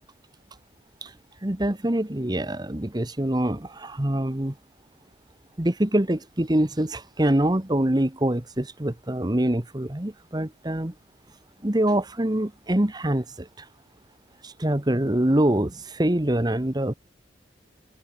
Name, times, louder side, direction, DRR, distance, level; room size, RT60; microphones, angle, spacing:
voice 1, 1.4-4.5 5.6-10.9 11.6-13.5 14.4-16.9, right 1 dB, 20° right, 1.2 m, -24 dB
head